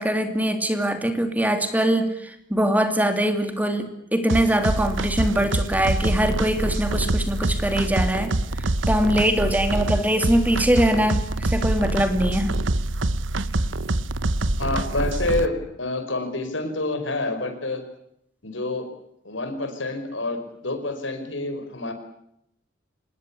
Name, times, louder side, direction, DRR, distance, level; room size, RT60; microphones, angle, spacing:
voice 1, 0.0-12.5, right 1 dB, 10° right, 7 dB, 2.7 m, -23 dB
sound 1, 4.3-15.5, right 2 dB, 80° right, 1.1 m, -25 dB
voice 2, 14.6-17.8 18.4-18.9 19.2-21.9, left 2 dB, 75° left, 8 dB, 5.0 m, -28 dB
26.5 x 20.5 x 8.5 m, 0.76 s
head